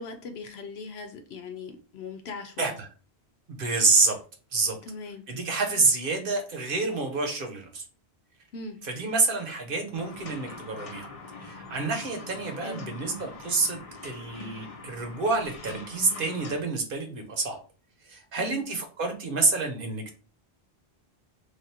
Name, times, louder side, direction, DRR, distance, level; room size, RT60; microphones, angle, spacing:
voice 1, 0.0-2.7 4.8-5.2 8.5-8.8 12.6-12.8 18.4-18.6, left 3 dB, 75° left, 0.9 m, -39 dB
voice 2, 2.6-2.9 3.5-4.2 4.5-4.8 5.3-7.8 8.8-11.1 11.4-17.6 18.0-20.1, right 3 dB, 55° right, 1.1 m, -28 dB
sound 1, 9.9-16.6, left 3 dB, 40° left, 0.7 m, -43 dB
3.3 x 2.5 x 4.3 m
omnidirectional pair, 1.1 m